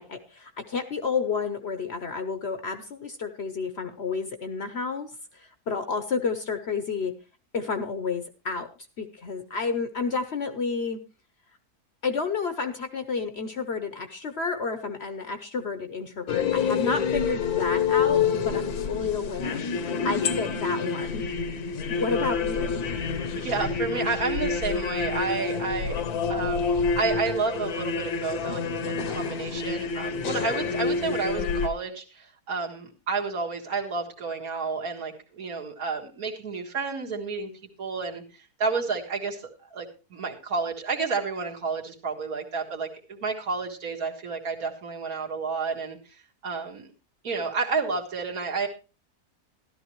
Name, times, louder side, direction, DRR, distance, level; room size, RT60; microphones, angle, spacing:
voice 1, 0.0-7.1 7.5-8.7 9.0-11.0 12.0-21.3 21.9-22.8, left 4 dB, 50° left, 9 dB, 0.9 m, -31 dB
sound 1, 16.3-31.7, left 5 dB, 75° left, 1.3 m, -28 dB
voice 2, 23.4-37.5 37.8-46.9 47.2-48.7, right 4 dB, 65° right, 0 dB, 2.1 m, -31 dB
13.5 x 12.5 x 3.0 m, 0.32 s
omnidirectional pair, 1.6 m